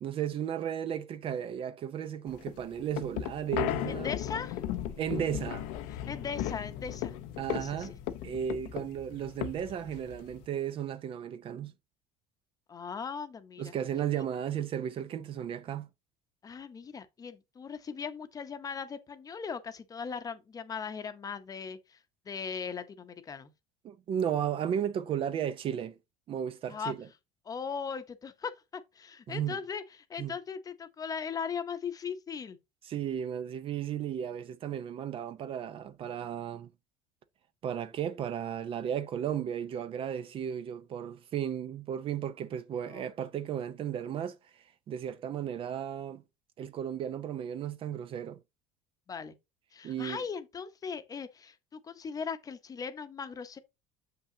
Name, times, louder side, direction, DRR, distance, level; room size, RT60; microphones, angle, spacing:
voice 1, 0.0-4.1 5.0-5.7 7.4-8.0 8.2-11.7 13.6-15.9 23.8-26.0 26.3-27.1 29.3-29.6 30.2-30.3 32.8-36.7 37.6-46.2 46.6-48.4 49.8-50.2, right 9 dB, 40° right, 0.5 m, -34 dB
sound 1, 2.3-10.5, left 11 dB, 80° left, 0.7 m, -36 dB
voice 2, 3.9-4.6 6.1-7.1 7.5-7.9 12.7-13.7 16.4-22.0 22.3-23.5 26.7-26.9 27.4-32.6 42.9-43.1 49.1-49.4 49.7-53.6, left 6 dB, 25° left, 0.8 m, -39 dB
6.9 x 5.7 x 2.8 m
cardioid pair, 125°, 14 cm